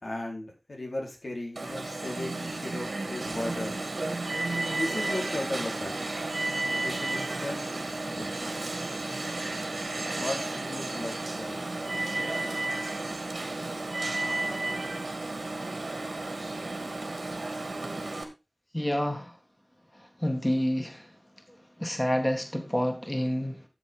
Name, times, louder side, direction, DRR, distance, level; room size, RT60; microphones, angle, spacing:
voice 1, 0.0-3.8 4.7-6.0 6.7-7.6 8.1-8.7 10.1-11.6, left 1 dB, 85° left, -1 dB, 4.4 m, -36 dB
Alarm, 1.6-18.2, right 2 dB, 90° right, 2.3 m, -33 dB
voice 2, 18.7-19.4 19.9-21.2 21.5-23.6, equal, 15° left, 4 dB, 2.0 m, -29 dB
13.0 x 7.5 x 3.8 m, 0.26 s
wide cardioid pair, 50°, 0 cm